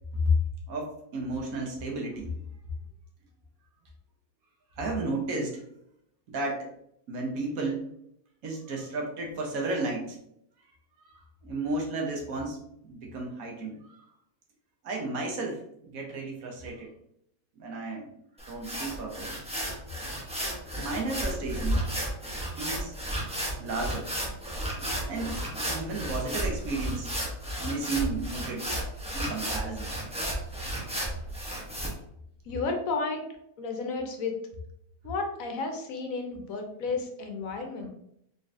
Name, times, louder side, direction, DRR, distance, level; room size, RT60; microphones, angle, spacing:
voice 1, 0.7-2.3 4.8-5.7 6.3-6.7 7.1-7.9 8.4-10.2 11.0-12.6 12.8-13.8 14.8-16.9 17.6-18.1 18.5-19.4 20.8-21.8 22.6-22.9 23.6-24.1 25.1-25.4 25.7-27.1 27.6-28.7 29.1-29.9 31.0-31.1 37.8-37.9, right 1 dB, 70° right, 0 dB, 1.3 m, -32 dB
sound 1, 18.4-31.9, right 1 dB, 10° right, 0.3 m, -33 dB
voice 2, 32.5-33.3 33.6-34.3 35.0-37.9, left 4 dB, 70° left, 3 dB, 1.0 m, -32 dB
3.9 x 3.2 x 2.5 m, 0.74 s
omnidirectional pair, 1.6 m